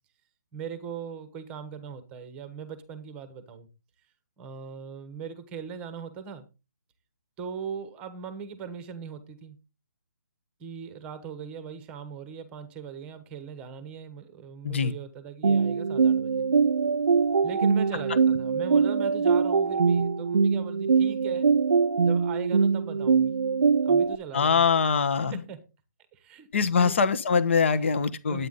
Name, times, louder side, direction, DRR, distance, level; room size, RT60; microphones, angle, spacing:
voice 1, 0.5-3.7 4.4-6.5 7.4-9.6 10.6-16.5 17.4-21.5 22.0-23.3 23.8-24.6 25.3-25.6 26.1-26.5 26.8-27.0 28.3-28.5, right 6 dB, 10° right, 1.1 m, -39 dB
sound 1, 15.4-24.2, right 5 dB, 75° right, 0.5 m, -23 dB
voice 2, 24.3-25.4 26.5-28.5, left 5 dB, 40° left, 1.2 m, -23 dB
9.5 x 9.3 x 4.0 m
hypercardioid pair, 170°, 10 cm